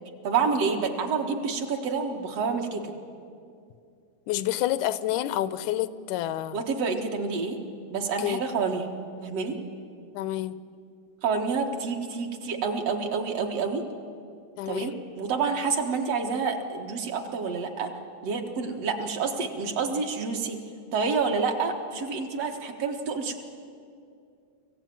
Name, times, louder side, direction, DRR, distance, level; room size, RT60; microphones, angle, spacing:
voice 1, 0.2-2.9 6.5-7.6 7.9-8.9 9.2-9.6 11.2-13.8 14.7-17.9 18.2-20.6 20.9-23.4, right 5 dB, 60° right, 3 dB, 2.5 m, -28 dB
voice 2, 4.3-6.6 8.2-8.4 10.1-10.6 14.6-14.9, left 13 dB, 85° left, 15 dB, 2.1 m, -28 dB
24.0 x 16.0 x 9.3 m, 2.4 s
omnidirectional pair, 3.4 m